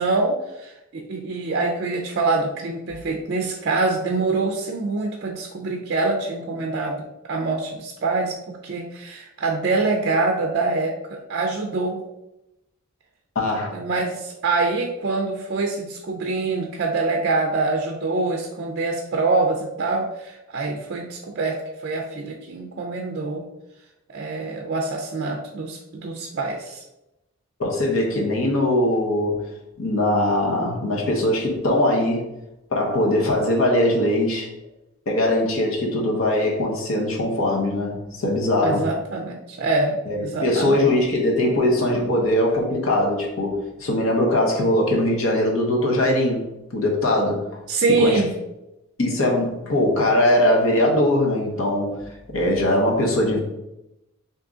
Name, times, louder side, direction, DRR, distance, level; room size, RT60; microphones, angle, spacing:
voice 1, 0.0-12.0 13.5-21.6 21.8-23.5 24.1-26.8 38.6-40.9 47.7-48.3, right 3 dB, 50° right, 2 dB, 0.4 m, -25 dB
voice 2, 13.3-13.8 27.6-29.4 29.8-32.3 32.7-34.5 35.1-38.9 40.1-47.4 47.9-48.2 49.0-52.0 52.3-53.4, left 1 dB, 70° left, -1 dB, 0.9 m, -21 dB
3.6 x 2.7 x 3.7 m, 0.91 s
head